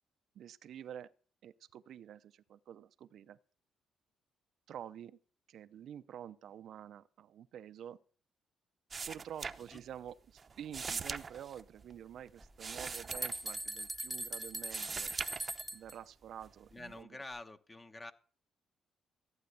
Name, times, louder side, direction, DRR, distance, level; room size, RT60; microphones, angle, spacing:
voice 1, 0.3-1.1 1.4-3.4 4.7-5.2 5.5-8.0 9.1-15.1 15.7-17.1, right 9 dB, 70° right, 0.7 m, -49 dB
sound 1, 8.9-10.1 10.4-14.2 14.5-16.0 16.4-17.0, right 5 dB, 40° right, 0.8 m, -42 dB
sound 2, 12.4-15.9, right 1 dB, 5° right, 1.0 m, -40 dB
voice 2, 16.7-18.1, left 2 dB, 25° left, 1.1 m, -47 dB
14.5 x 8.9 x 6.8 m
cardioid pair, 90°, 0 cm